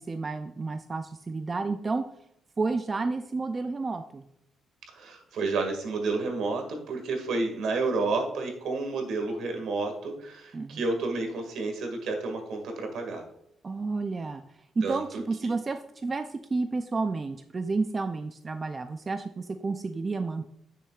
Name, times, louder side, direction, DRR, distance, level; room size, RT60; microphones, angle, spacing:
voice 1, 0.0-2.0 2.6-4.2 10.5-10.8 13.6-14.4 14.8-20.5, right 3 dB, 25° right, 7 dB, 0.3 m, -31 dB
voice 2, 4.9-13.2 14.8-15.5, right 3 dB, 70° right, 4 dB, 1.9 m, -30 dB
9.3 x 6.6 x 2.4 m, 0.75 s
cardioid pair, 145°, 0 cm